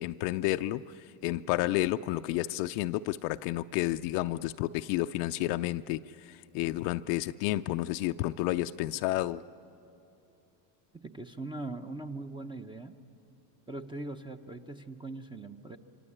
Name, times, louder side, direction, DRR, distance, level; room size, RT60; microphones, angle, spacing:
voice 1, 0.0-9.4, left 16 dB, 70° left, 9 dB, 0.7 m, -31 dB
voice 2, 11.0-12.9 13.7-15.8, right 2 dB, 10° right, 6 dB, 0.7 m, -41 dB
26.0 x 25.5 x 8.7 m, 2.8 s
supercardioid pair, 125°, 49 cm